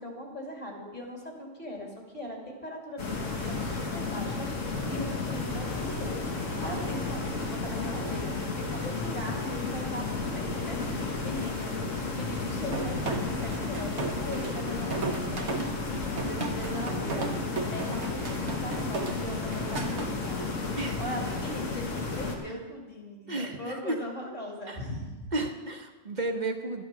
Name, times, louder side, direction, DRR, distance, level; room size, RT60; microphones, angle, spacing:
voice 1, 0.0-11.8 12.1-15.4 16.1-20.4 21.0-25.5, equal, 40° left, -1 dB, 2.9 m, -40 dB
sound 1, 3.0-22.4, left 3 dB, 75° left, 1.9 m, -32 dB
sound 2, 12.7-20.1, right 4 dB, 60° right, 1.2 m, -35 dB
voice 2, 23.3-24.0 24.7-24.8 25.3-26.8, right 2 dB, 40° right, 4 dB, 1.1 m, -33 dB
12.5 x 10.5 x 6.1 m, 1.2 s
omnidirectional pair, 1.3 m